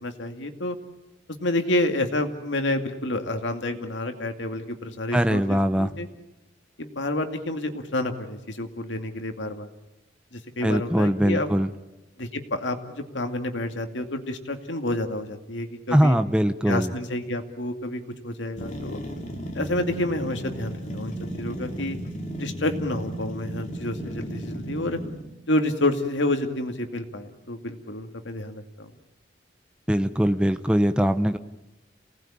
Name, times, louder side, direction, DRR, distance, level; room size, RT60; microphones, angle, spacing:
voice 1, 0.0-0.8 1.3-6.1 6.8-9.7 10.3-11.5 12.2-16.2 16.7-19.0 19.5-22.0 22.4-25.0 25.5-28.9, left 1 dB, 90° left, 6 dB, 2.3 m, -29 dB
voice 2, 5.1-5.9 10.6-11.7 15.9-16.9 29.9-31.4, equal, 5° right, 8 dB, 0.9 m, -21 dB
sound 1, 18.6-25.3, right 1 dB, 40° left, 3.1 m, -35 dB
28.5 x 18.5 x 8.8 m, 1.0 s
head